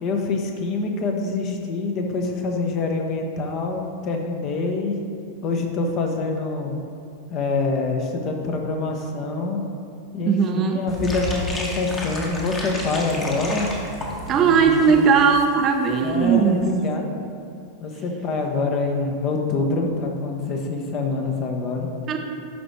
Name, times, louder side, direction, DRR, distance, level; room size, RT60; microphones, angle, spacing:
voice 1, 0.0-5.0 5.4-6.8 7.3-9.6 10.1-13.7 14.3-15.1 16.0-17.1 17.8-21.9, left 3 dB, 35° left, 3 dB, 0.9 m, -25 dB
voice 2, 10.3-10.8 14.3-16.7 22.1-22.2, right 6 dB, 30° right, 5 dB, 0.5 m, -18 dB
sound 1, 10.9-15.5 15.7-15.8 16.1-16.3 16.6-16.7, left 1 dB, 20° left, 1.2 m, -32 dB
11.5 x 4.9 x 3.2 m, 2.5 s
figure-of-eight pair, 90°, 0 cm